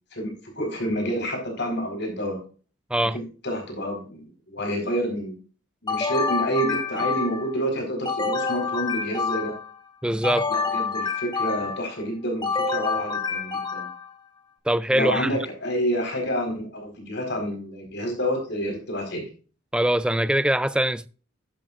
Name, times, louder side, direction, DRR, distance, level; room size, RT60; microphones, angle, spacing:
voice 1, 0.1-2.4 3.1-5.4 5.8-9.5 10.5-13.9 14.9-19.3, equal, 55° left, 4.4 m, -28 dB
sound 1, 5.9-7.5 8.1-9.8 10.2-11.9 12.4-14.1, left 4 dB, 20° left, 1.8 m, -27 dB
voice 2, 10.0-10.5 14.7-15.4 19.7-21.1, right 1 dB, 5° right, 0.3 m, -22 dB
11.0 x 11.0 x 2.5 m
head